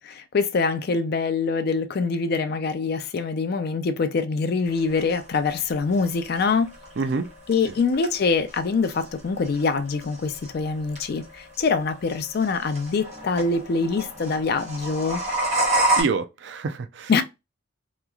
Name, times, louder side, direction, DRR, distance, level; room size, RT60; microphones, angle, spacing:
voice 1, 0.0-6.7 7.5-15.2 17.1-17.2, left 4 dB, 50° left, 0.4 m, -24 dB
sound 1, 4.7-16.0, right 2 dB, 35° right, 1.1 m, -30 dB
voice 2, 7.0-7.3 7.7-7.8 16.0-17.1, right 4 dB, 60° right, 0.4 m, -27 dB
2.9 x 2.3 x 2.2 m
head